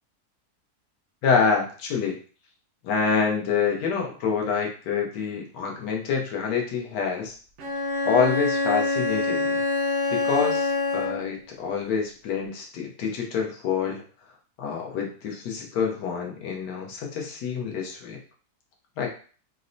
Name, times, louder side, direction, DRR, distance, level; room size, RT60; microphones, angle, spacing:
voice 1, 1.2-2.2 2.8-7.4 8.0-9.6 10.1-14.0 14.6-18.2 19.0-19.1, left 6 dB, 90° left, 0 dB, 1.4 m, -27 dB
Bowed string instrument, 7.6-11.4, left 3 dB, 60° right, 0.8 m, -25 dB
3.9 x 2.1 x 2.6 m, 0.40 s
omnidirectional pair, 1.8 m